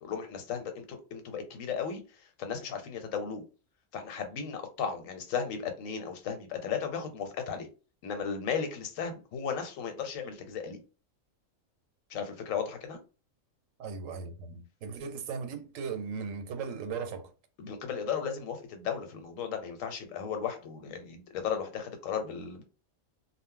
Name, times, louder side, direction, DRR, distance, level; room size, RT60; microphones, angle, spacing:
voice 1, 0.0-2.0 2.4-3.4 3.9-7.7 8.0-10.8 12.1-13.0 17.6-22.6, left 7 dB, 85° left, 1.0 m, -35 dB
voice 2, 13.8-17.3, right 5 dB, 85° right, 1.0 m, -37 dB
2.1 x 2.0 x 3.6 m
omnidirectional pair, 1.3 m